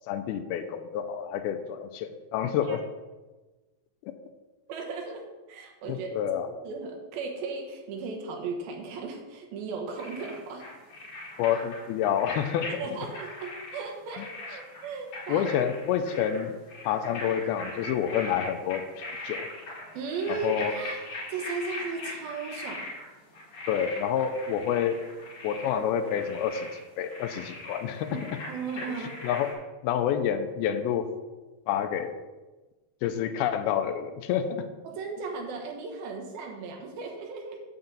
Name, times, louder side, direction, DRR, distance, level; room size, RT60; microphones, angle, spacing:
voice 1, 0.1-2.8 4.0-4.1 5.9-6.5 11.4-12.9 14.2-14.3 15.3-16.6 16.8-19.5 20.3-20.8 23.7-25.0 25.4-26.7 27.0-28.1 28.9-29.5 29.8-31.1 31.7-32.2 33.0-34.7, left 9 dB, 85° left, 9 dB, 2.5 m, -28 dB
voice 2, 4.7-6.1 6.6-10.7 12.8-15.5 19.9-21.0 21.3-22.9 28.1-28.2 28.5-29.3 34.8-37.6, right 4 dB, 75° right, 2 dB, 2.9 m, -36 dB
sound 1, 10.0-12.8 13.0-13.8 14.1-23.1 23.3-26.8 27.1-29.5, left 2 dB, 55° left, 3.1 m, -40 dB
8.9 x 3.9 x 7.1 m, 1.2 s
omnidirectional pair, 4.3 m